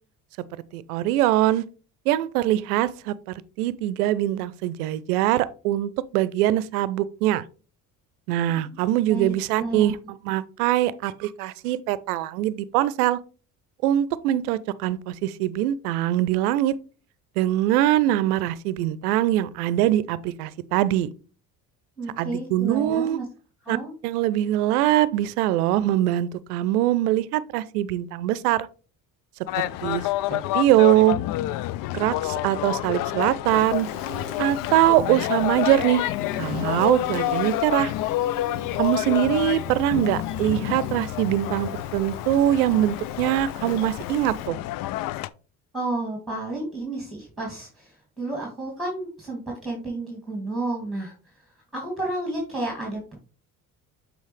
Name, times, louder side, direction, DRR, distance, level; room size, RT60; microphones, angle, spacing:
voice 1, 0.7-1.6 2.1-3.1 3.6-7.4 8.3-13.2 13.8-16.8 17.4-21.1 22.2-23.2 23.7-23.8 24.0-28.7 29.6-31.2 31.9-33.9 34.4-36.0 36.4-37.9 38.8-44.6, right 13 dB, 75° right, 0.6 m, -23 dB
voice 2, 9.1-10.0 22.0-23.3 23.6-23.9 45.7-51.1 51.7-53.2, right 2 dB, ahead, 2.5 m, -31 dB
sound 1, 29.5-45.3, left 15 dB, 50° left, 0.4 m, -29 dB
Insect, 33.5-44.5, left 5 dB, 80° left, 1.0 m, -40 dB
8.0 x 4.5 x 3.2 m
hypercardioid pair, 60°, 46 cm